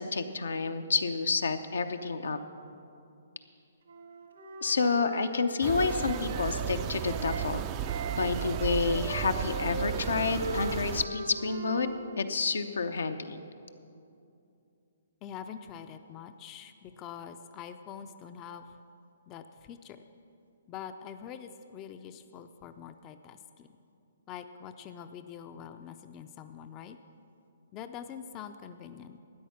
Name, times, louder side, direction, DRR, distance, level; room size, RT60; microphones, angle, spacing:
voice 1, 0.0-2.4 4.6-7.6 8.2-13.4, left 4 dB, 75° left, 8 dB, 0.8 m, -29 dB
Wind instrument woodwind instrument, 3.9-7.5 7.8-12.0, right 1 dB, 75° right, 1.8 m, -40 dB
sound 1, 5.6-11.0, right 11 dB, 30° right, 0.4 m, -34 dB
voice 2, 15.2-18.7 19.3-20.0 20.7-23.7 24.3-27.0 27.7-29.2, left 8 dB, 25° left, 9 dB, 0.5 m, -45 dB
13.0 x 9.3 x 5.9 m, 2.6 s
hypercardioid pair, 140°, 0 cm